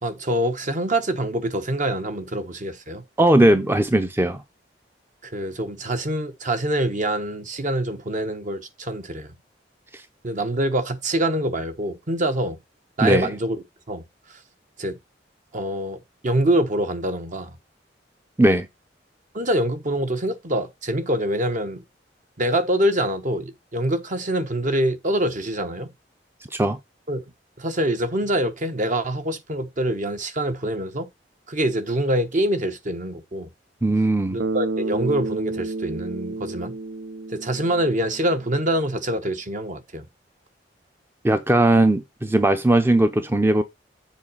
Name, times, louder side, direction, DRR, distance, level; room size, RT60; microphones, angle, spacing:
voice 1, 0.0-3.0 5.2-9.3 10.2-12.6 13.0-13.6 13.9-14.0 14.8-15.0 15.5-17.5 19.3-21.8 22.4-25.9 27.1-27.2 27.6-31.1 31.5-33.5 34.3-36.7 37.3-40.1, right 1 dB, 45° right, 1.1 m, -25 dB
voice 2, 3.2-4.4 9.9-10.0 13.0-13.3 18.4-18.7 26.5-26.8 33.8-34.4 41.2-43.6, right 1 dB, 15° right, 0.5 m, -18 dB
Bass guitar, 34.4-38.6, right 3 dB, 85° right, 0.7 m, -30 dB
7.4 x 4.0 x 5.5 m
head